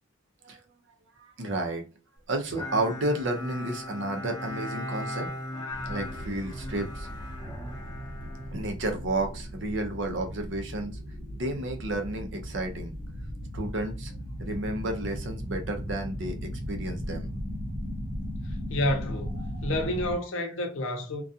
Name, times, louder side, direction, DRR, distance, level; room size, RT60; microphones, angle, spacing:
voice 1, 1.2-1.9 2.3-5.3 5.9-7.1 8.5-11.0 11.3-12.9 13.5-14.1 14.4-17.3, right 1 dB, 60° right, 0.6 m, -31 dB
Bowed string instrument, 2.5-9.2, left 1 dB, 20° left, 0.5 m, -38 dB
sound 1, 5.7-20.2, equal, 80° right, 0.9 m, -37 dB
voice 2, 18.4-21.2, left 1 dB, 70° left, 0.7 m, -30 dB
2.4 x 2.2 x 2.6 m
head